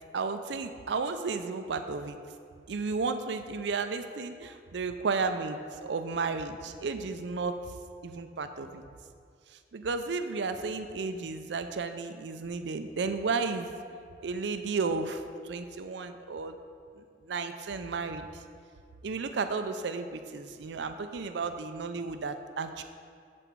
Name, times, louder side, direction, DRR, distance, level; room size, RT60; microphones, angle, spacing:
voice 1, 0.1-2.2 2.7-7.5 8.0-8.8 9.7-13.7 14.2-16.6 17.0-18.3 19.0-22.8, right 4 dB, 80° right, 8 dB, 0.5 m, -33 dB
7.5 x 7.0 x 4.6 m, 2.2 s
head